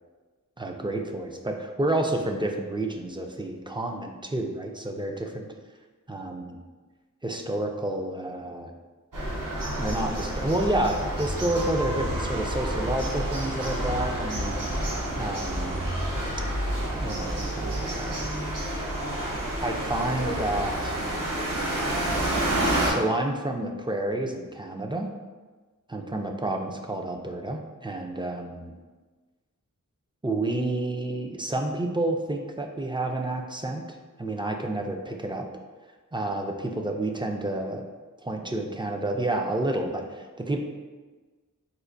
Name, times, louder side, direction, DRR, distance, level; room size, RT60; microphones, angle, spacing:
voice 1, 0.6-5.5 6.1-6.6 7.2-8.7 9.8-14.6 15.2-15.8 17.0-18.4 19.6-21.0 22.9-25.1 25.9-28.7 30.2-35.5 36.1-37.8 38.2-40.6, right 1 dB, 15° right, 2 dB, 0.3 m, -30 dB
sound 1, 9.1-22.9, right 1 dB, 70° right, 0.8 m, -29 dB
4.2 x 2.5 x 2.5 m, 1.3 s
wide cardioid pair, 55°, 33 cm